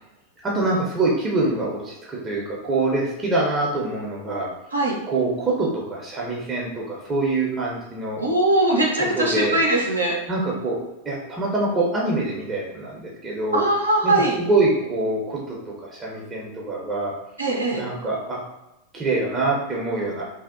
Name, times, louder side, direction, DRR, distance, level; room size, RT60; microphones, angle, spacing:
voice 1, 0.4-4.5 5.1-8.2 9.0-9.6 10.3-10.8 11.1-13.6 14.0-17.1 17.7-18.4 18.9-20.2, right 2 dB, 20° right, -4 dB, 0.5 m, -25 dB
voice 2, 8.2-10.2 13.5-14.4 17.4-17.8, right 1 dB, 80° right, -2 dB, 0.4 m, -21 dB
2.6 x 2.0 x 2.4 m, 0.93 s
figure-of-eight pair, 90°, 0 cm